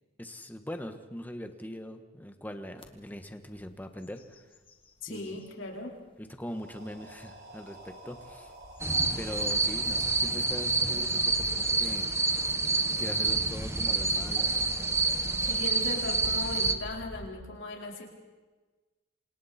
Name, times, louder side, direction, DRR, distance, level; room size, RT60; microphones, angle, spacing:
voice 1, 0.2-4.2 5.1-5.4 6.2-8.5 9.2-12.1 13.0-14.6 15.6-15.7, equal, 10° left, 7 dB, 1.4 m, -41 dB
sound 1, 2.8-2.9 3.4-3.7 4.0-5.5 6.1-6.2 7.9-17.3, equal, 25° left, 2.0 m, -46 dB
voice 2, 5.0-5.9 15.5-18.1, left 1 dB, 70° left, -1 dB, 4.5 m, -38 dB
sound 2, 6.4-12.3, right 1 dB, 55° right, 5.1 m, -51 dB
sound 3, 8.8-16.7, right 3 dB, 15° right, 1.1 m, -28 dB
28.0 x 26.5 x 4.4 m, 1.3 s
head